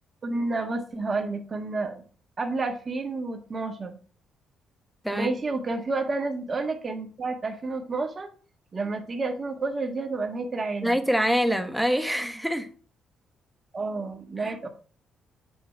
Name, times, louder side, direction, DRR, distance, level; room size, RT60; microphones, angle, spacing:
voice 1, 0.2-2.0 2.4-4.0 5.1-8.3 8.7-11.0 13.7-14.7, right 3 dB, 35° right, 1.6 m, -30 dB
voice 2, 10.8-12.7 14.4-14.5, equal, ahead, 1.1 m, -25 dB
8.6 x 2.9 x 5.8 m
cardioid pair, 90°, 0 cm